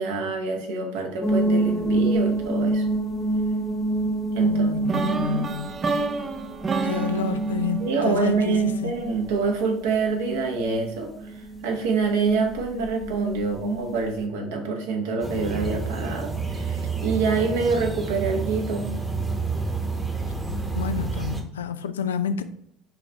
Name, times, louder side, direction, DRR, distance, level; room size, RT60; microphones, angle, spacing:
voice 1, 0.0-2.9 4.3-5.6 7.8-18.9, right 4 dB, 75° right, 0.9 m, -26 dB
sound 1, 1.2-14.2, right 2 dB, 20° left, 0.8 m, -28 dB
voice 2, 4.4-5.7 6.8-8.9 20.8-22.4, left 7 dB, 85° left, 0.3 m, -29 dB
sound 2, 4.9-8.9, right 4 dB, 30° right, 0.5 m, -29 dB
sound 3, 15.2-21.4, right 4 dB, 15° right, 0.9 m, -29 dB
4.5 x 2.6 x 4.4 m
hypercardioid pair, 65°, 0 cm